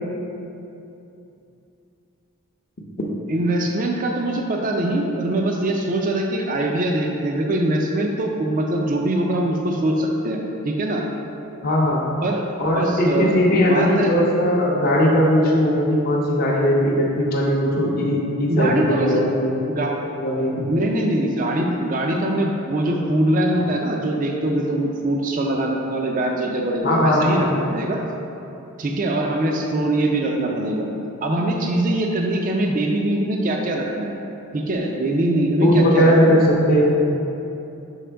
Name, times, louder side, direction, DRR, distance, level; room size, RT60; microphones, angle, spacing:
voice 1, 3.3-11.1 12.2-12.4 12.7-13.4 13.7-14.1 18.5-19.1 19.7-19.9 20.7-28.0 28.8-30.9 31.2-34.1 34.5-36.4, right 1 dB, 35° right, 1 dB, 0.4 m, -22 dB
voice 2, 11.6-12.0 12.6-19.6 20.2-20.6 26.8-27.6 35.5-37.0, equal, 40° left, -4 dB, 0.6 m, -19 dB
6.3 x 4.4 x 3.4 m, 2.9 s
head